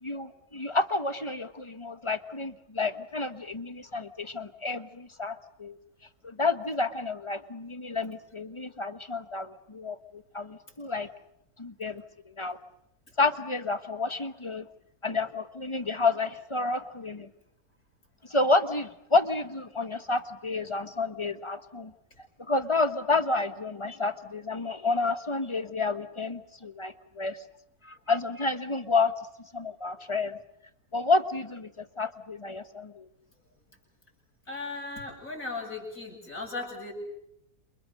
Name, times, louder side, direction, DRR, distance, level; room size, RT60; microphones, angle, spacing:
voice 1, 0.0-5.8 6.2-11.1 11.6-12.6 13.2-14.7 15.0-17.3 18.3-21.9 22.5-27.4 27.8-29.1 29.5-30.4 30.9-33.0, left 3 dB, 20° left, 10 dB, 1.1 m, -30 dB
voice 2, 34.5-36.9, left 3 dB, 55° left, 1 dB, 8.0 m, -37 dB
29.0 x 28.5 x 6.6 m, 0.77 s
omnidirectional pair, 1.7 m